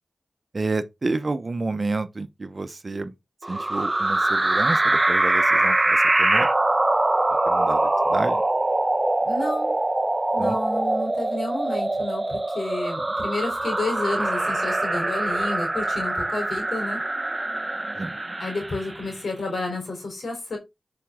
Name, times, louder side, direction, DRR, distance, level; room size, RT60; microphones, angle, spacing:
voice 1, 0.5-3.1 3.5-6.5 7.5-8.4 10.4-10.6 18.0-18.1, right 3 dB, 50° right, 1.0 m, -29 dB
sound 1, 3.4-19.1, right 2 dB, 30° right, 0.8 m, -23 dB
voice 2, 9.2-9.7 10.3-17.0 18.4-20.6, left 2 dB, 80° left, 3.6 m, -30 dB
7.3 x 5.3 x 3.7 m
cardioid pair, 45°, 0 cm